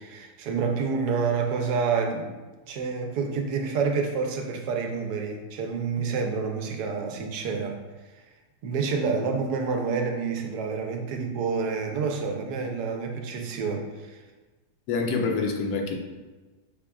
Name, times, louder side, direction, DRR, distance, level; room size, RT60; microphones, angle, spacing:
voice 1, 0.0-2.3 2.7-7.8 8.6-14.2, right 5 dB, 80° right, 3 dB, 1.2 m, -28 dB
voice 2, 14.9-16.0, left 4 dB, 75° left, 2 dB, 1.0 m, -26 dB
5.3 x 3.6 x 2.2 m, 1.2 s
omnidirectional pair, 1.8 m